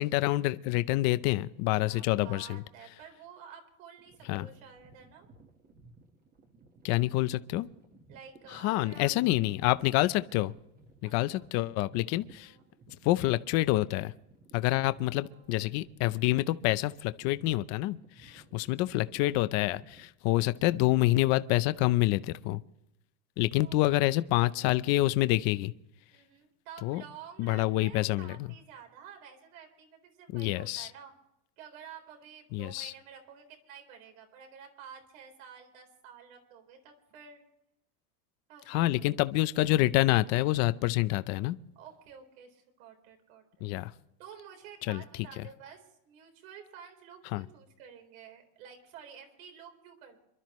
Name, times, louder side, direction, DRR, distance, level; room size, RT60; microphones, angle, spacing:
voice 1, 0.0-2.6 4.3-4.5 6.8-7.7 8.5-10.5 11.0-12.5 13.0-14.1 14.5-22.6 23.4-25.7 26.8-27.0 27.4-28.5 30.3-30.9 32.5-32.9 38.7-41.6 43.6-43.9 44.9-45.0 45.4-45.5 47.3-47.4, left 17 dB, 40° left, 0.6 m, -27 dB
voice 2, 1.9-5.3 8.1-9.1 11.0-11.5 12.4-12.6 15.2-15.5 18.2-18.8 23.6-24.0 26.1-31.1 31.6-37.4 38.5-38.8 41.7-43.4 43.8-43.9 44.2-50.2, right 7 dB, 70° right, 4.1 m, -51 dB
sound 1, 4.0-20.1, right 3 dB, 20° right, 1.5 m, -58 dB
27.0 x 12.5 x 3.1 m
cardioid pair, 175°, 42 cm